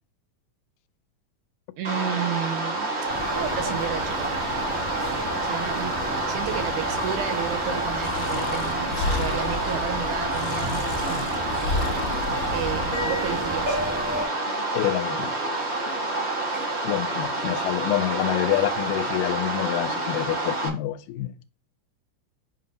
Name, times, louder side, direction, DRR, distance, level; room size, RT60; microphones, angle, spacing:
sound 1, 1.8-20.7, right 2 dB, 55° right, 0.7 m, -28 dB
voice 1, 1.8-2.9 3.4-4.5 5.4-11.5 12.5-13.8 16.5-16.6, right 9 dB, 80° right, 1.8 m, -32 dB
sound 2, 3.1-14.2, equal, 20° right, 0.6 m, -33 dB
Breathing, 8.0-13.1, left 4 dB, 70° left, 1.7 m, -32 dB
voice 2, 14.7-15.3 16.8-21.3, left 14 dB, 85° left, 2.2 m, -27 dB
7.6 x 2.9 x 5.1 m
omnidirectional pair, 3.7 m